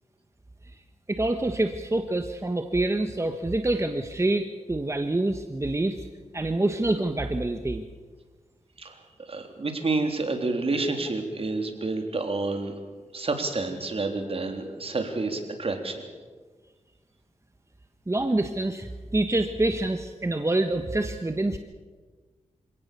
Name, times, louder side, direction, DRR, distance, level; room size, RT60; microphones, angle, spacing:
voice 1, 1.1-6.1 6.3-7.8 18.1-21.6, right 2 dB, 25° right, 7 dB, 1.4 m, -26 dB
voice 2, 9.3-12.7 13.1-16.0, right 3 dB, 50° right, 4 dB, 3.8 m, -29 dB
27.0 x 17.5 x 7.0 m, 1.4 s
cardioid pair, 65°, 12 cm